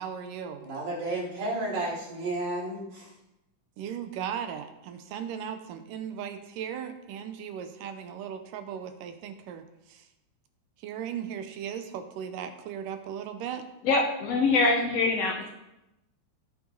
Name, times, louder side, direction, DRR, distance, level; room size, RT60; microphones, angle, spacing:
voice 1, 0.0-0.7 3.8-10.1 10.8-13.7, right 8 dB, 75° right, 8 dB, 2.2 m, -37 dB
voice 2, 0.6-3.1, right 2 dB, 50° right, -8 dB, 5.2 m, -32 dB
voice 3, 13.8-15.5, left 3 dB, 65° left, 1 dB, 1.6 m, -24 dB
17.0 x 5.8 x 3.9 m, 0.91 s
omnidirectional pair, 4.1 m